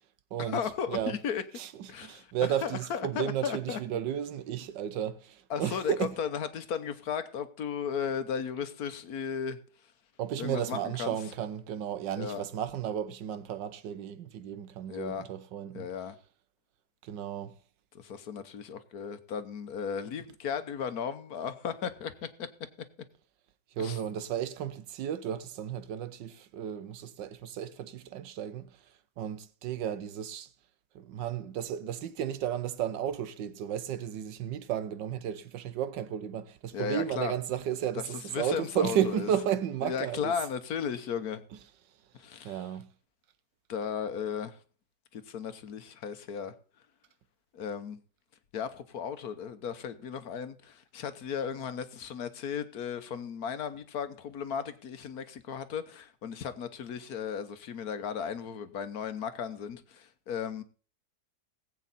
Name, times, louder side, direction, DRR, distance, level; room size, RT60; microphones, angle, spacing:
voice 1, 0.4-1.4 1.9-3.8 5.5-9.6 10.4-11.2 12.2-12.4 14.9-15.3 15.7-16.2 17.9-22.1 23.8-24.0 36.7-37.3 37.9-39.3 39.8-41.4 42.2-42.7 43.7-44.5 45.1-46.5 47.5-48.0 48.5-60.6, left 7 dB, 65° left, 1.4 m, -35 dB
voice 2, 1.6-6.1 10.2-15.9 17.0-17.6 23.8-28.7 29.2-30.5 30.9-40.3 42.4-42.9, right 9 dB, 90° right, 1.5 m, -33 dB
18.5 x 8.4 x 4.1 m
omnidirectional pair, 1.9 m